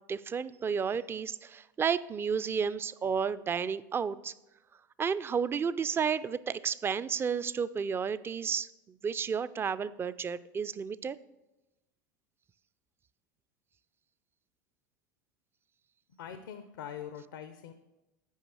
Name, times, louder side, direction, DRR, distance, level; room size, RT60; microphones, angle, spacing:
voice 1, 0.1-4.3 5.0-8.7 9.0-11.2, right 6 dB, 25° right, 16 dB, 0.4 m, -32 dB
voice 2, 16.2-17.7, left 9 dB, 80° left, 10 dB, 0.6 m, -43 dB
9.2 x 5.0 x 6.2 m, 1.0 s
hypercardioid pair, 90°, 10 cm